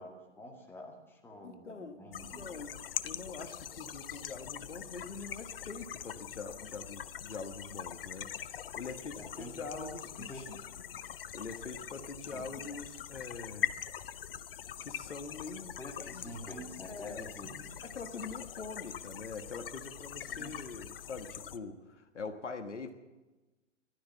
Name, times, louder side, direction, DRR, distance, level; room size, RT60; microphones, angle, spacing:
voice 1, 0.0-2.5 9.2-9.9 10.2-10.6 12.3-12.5 15.8-17.8 20.3-20.6, equal, 5° left, 0 dB, 2.0 m, -47 dB
voice 2, 1.4-2.7 3.0-10.6 11.3-13.8 14.8-16.3 16.9-17.3 17.8-22.9, left 4 dB, 70° left, 7 dB, 1.5 m, -44 dB
sound 1, 2.1-21.6, left 10 dB, 50° left, 0.7 m, -43 dB
15.0 x 12.5 x 7.2 m, 1.1 s
figure-of-eight pair, 115°, 37 cm